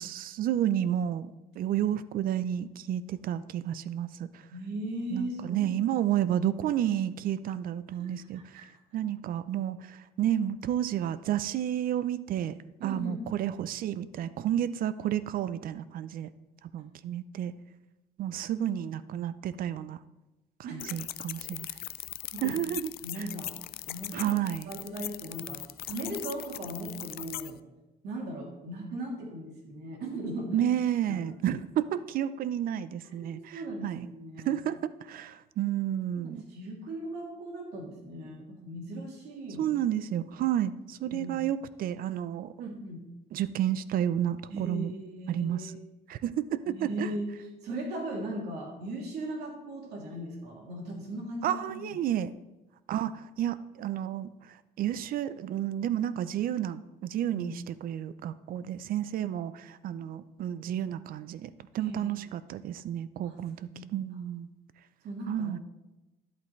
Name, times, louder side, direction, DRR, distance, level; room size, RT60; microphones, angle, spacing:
voice 1, 0.0-4.5 5.1-8.7 8.9-12.6 12.8-16.3 16.7-17.5 18.2-20.0 20.7-21.7 22.4-23.3 24.1-24.7 30.5-34.1 34.5-36.4 39.6-42.7 43.3-44.9 45.3-45.7 46.1-47.1 51.4-52.3 52.9-64.5 65.3-65.6, right 11 dB, 60° right, 15 dB, 0.5 m, -31 dB
voice 2, 4.5-5.8 8.0-8.6 12.8-13.2 20.6-21.0 22.4-22.5 23.0-23.5 23.8-24.4 24.7-27.6 28.0-30.6 31.1-31.3 33.2-34.6 36.2-39.7 41.1-41.4 42.6-43.0 44.5-45.8 46.7-47.3 47.6-52.0 57.3-57.5 61.7-62.1 63.2-63.3 63.6-63.9 65.0-65.5, right 1 dB, 75° right, -1 dB, 2.8 m, -38 dB
sound 1, 20.8-27.5, left 15 dB, 65° left, 0.4 m, -40 dB
11.0 x 8.4 x 3.2 m, 1.0 s
cardioid pair, 110°, 17 cm